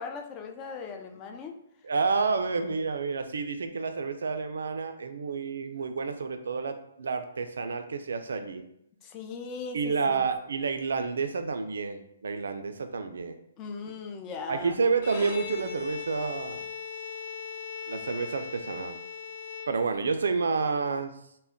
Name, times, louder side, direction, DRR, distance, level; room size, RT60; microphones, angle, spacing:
voice 1, 0.0-1.5 9.0-10.2 13.6-14.8, left 5 dB, 25° left, 5 dB, 0.3 m, -39 dB
voice 2, 1.8-8.7 9.7-13.4 14.5-16.6 17.9-19.0 19.7-21.1, right 4 dB, 80° right, 8 dB, 0.3 m, -29 dB
Bowed string instrument, 14.9-20.2, left 6 dB, 60° left, 1.0 m, -39 dB
2.2 x 2.1 x 3.6 m, 0.75 s
hypercardioid pair, 150°, 0 cm